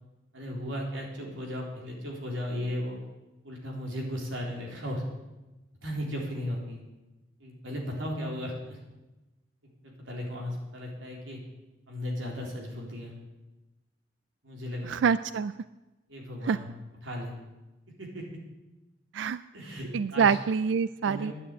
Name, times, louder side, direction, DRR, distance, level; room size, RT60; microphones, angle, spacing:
voice 1, 0.3-3.0 3.4-5.0 5.8-6.8 7.4-8.8 9.8-11.4 11.9-13.1 14.4-14.9 16.1-16.7 17.0-17.3 18.0-18.3 19.5-20.4 21.0-21.3, equal, 85° right, -1 dB, 3.8 m, -36 dB
voice 2, 14.8-15.5 16.5-16.6 19.1-19.4 19.9-21.3, right 6 dB, 70° right, 15 dB, 0.3 m, -26 dB
11.0 x 9.4 x 8.6 m, 1.1 s
head